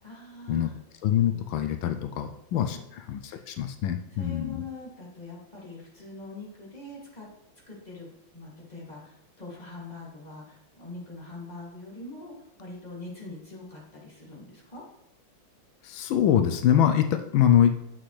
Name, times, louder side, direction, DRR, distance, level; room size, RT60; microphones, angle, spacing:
voice 1, 0.0-0.7 2.5-2.8 4.1-7.3 7.7-8.1 8.3-14.8, left 2 dB, 20° left, -4 dB, 2.5 m, -43 dB
voice 2, 1.0-2.8 3.1-4.6 15.8-17.7, left 10 dB, 90° left, 8 dB, 1.4 m, -24 dB
10.0 x 7.9 x 3.3 m, 0.84 s
omnidirectional pair, 2.2 m